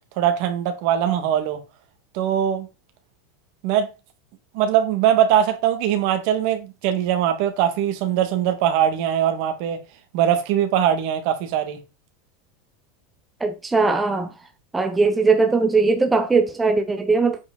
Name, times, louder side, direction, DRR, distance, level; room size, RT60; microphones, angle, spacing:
voice 1, 0.2-1.6 2.1-2.7 3.6-3.9 4.5-9.8 10.1-11.8, right 10 dB, 60° right, 1.9 m, -21 dB
voice 2, 13.4-14.3 14.7-17.4, right 4 dB, 10° right, 0.9 m, -19 dB
8.4 x 5.0 x 4.0 m
supercardioid pair, 140°, 0 cm